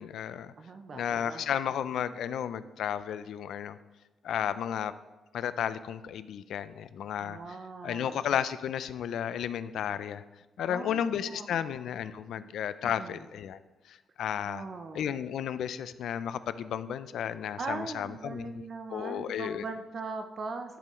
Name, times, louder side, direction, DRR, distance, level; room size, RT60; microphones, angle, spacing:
voice 1, 0.0-0.5 0.9-3.8 4.2-4.9 5.3-7.6 7.8-10.2 10.6-13.6 13.9-14.6 14.9-19.7, left 9 dB, 80° left, 14 dB, 0.4 m, -33 dB
voice 2, 0.6-1.5 7.2-8.3 10.7-11.5 12.4-12.5 12.8-13.2 14.4-15.1 17.6-20.8, right 4 dB, 40° right, 6 dB, 0.5 m, -40 dB
12.0 x 6.8 x 3.1 m, 1.1 s
wide cardioid pair, 175°, 0 cm